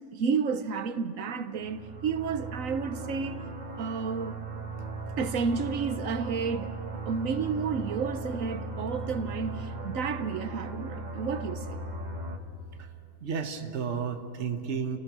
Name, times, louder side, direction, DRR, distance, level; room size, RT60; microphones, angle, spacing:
voice 1, 0.1-3.5 3.8-4.4 5.2-6.7 7.1-11.8, right 5 dB, 85° right, 1.3 m, -31 dB
sound 1, 1.6-12.4, right 2 dB, 35° right, 1.4 m, -38 dB
voice 2, 13.2-15.0, right 6 dB, 60° right, 1.5 m, -32 dB
29.5 x 17.0 x 6.2 m
omnidirectional pair, 1.3 m